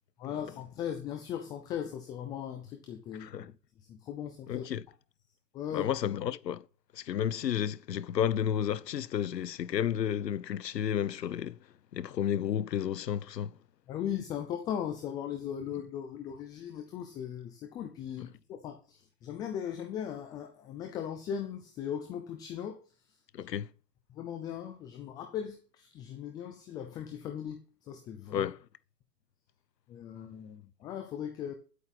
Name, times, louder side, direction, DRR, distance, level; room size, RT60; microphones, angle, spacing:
voice 1, 0.2-3.5 3.8-4.6 5.5-5.9 13.9-22.8 23.4-23.5 24.1-27.6 27.9-28.5 29.9-31.5, left 9 dB, 10° left, 0.4 m, -38 dB
voice 2, 3.2-3.5 4.5-4.8 5.7-6.7 6.9-11.6 11.9-13.6 23.3-23.7 28.3-28.7, left 9 dB, 90° left, 0.9 m, -32 dB
11.0 x 8.3 x 5.8 m
hypercardioid pair, 135°, 48 cm